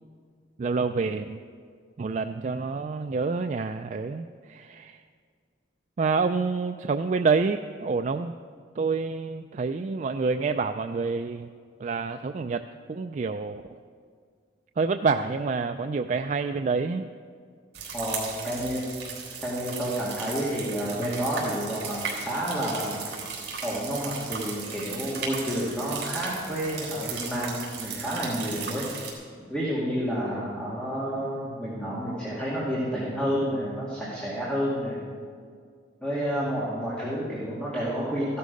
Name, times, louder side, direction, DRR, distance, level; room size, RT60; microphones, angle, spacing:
voice 1, 0.6-1.4 2.0-5.0 6.0-8.3 8.8-11.5 11.8-13.6 14.8-17.1, right 4 dB, 40° right, 7 dB, 0.3 m, -27 dB
sound 1, 17.7-29.1, right 5 dB, 60° right, 3.4 m, -36 dB
voice 2, 17.9-18.8 19.4-23.0 23.6-28.8 29.5-35.0 36.0-38.4, equal, 5° left, -7 dB, 2.2 m, -30 dB
14.5 x 11.5 x 5.3 m, 2.1 s
head